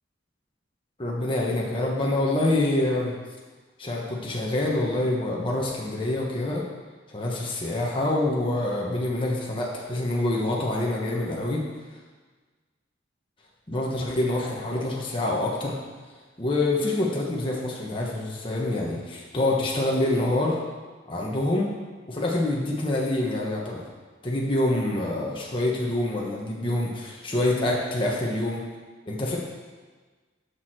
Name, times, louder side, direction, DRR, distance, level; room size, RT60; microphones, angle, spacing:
voice 1, 1.0-3.1 3.8-6.6 7.1-11.6 13.7-15.8 16.4-20.6 21.1-21.7 22.1-23.9 24.2-28.6 29.1-29.4, left 1 dB, 25° left, -3 dB, 1.2 m, -26 dB
7.2 x 6.4 x 6.0 m, 1.4 s
head